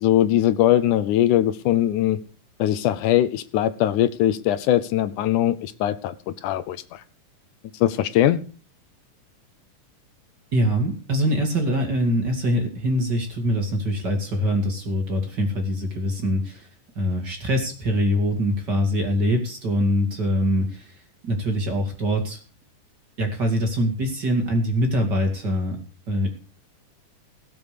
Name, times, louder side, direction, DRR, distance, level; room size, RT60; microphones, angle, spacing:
voice 1, 0.0-2.2 2.6-7.0 7.8-8.4, left 12 dB, 80° left, 13 dB, 2.2 m, -21 dB
voice 2, 10.5-16.7 17.0-20.9 21.2-22.4 23.2-25.8 26.1-26.3, equal, 35° right, 3 dB, 2.6 m, -23 dB
17.0 x 7.1 x 6.7 m, 0.39 s
omnidirectional pair, 3.6 m